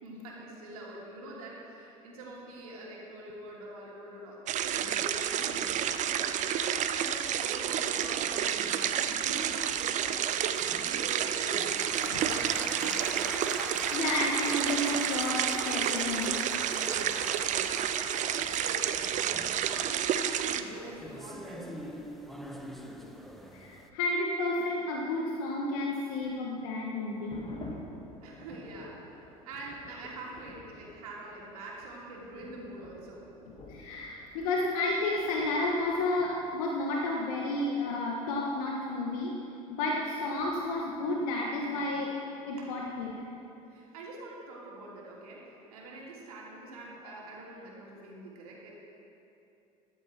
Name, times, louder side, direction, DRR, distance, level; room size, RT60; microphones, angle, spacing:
voice 1, 0.0-5.9 6.1-13.4 16.9-21.9 28.2-33.3 39.8-40.1 42.6-42.7 43.7-48.7, right 2 dB, 75° right, -3 dB, 2.9 m, -45 dB
sound 1, 4.5-20.6, right 9 dB, 40° right, 0.7 m, -30 dB
sound 2, 7.6-23.9, equal, ahead, 1.2 m, -44 dB
voice 2, 13.6-16.4 23.5-27.5 33.7-39.3 39.7-42.1 42.4-43.1, left 2 dB, 65° left, -1 dB, 1.4 m, -31 dB
sound 3, 27.1-36.5, left 1 dB, 30° left, 2.1 m, -50 dB
13.5 x 11.5 x 4.4 m, 2.7 s
hypercardioid pair, 70°, 19 cm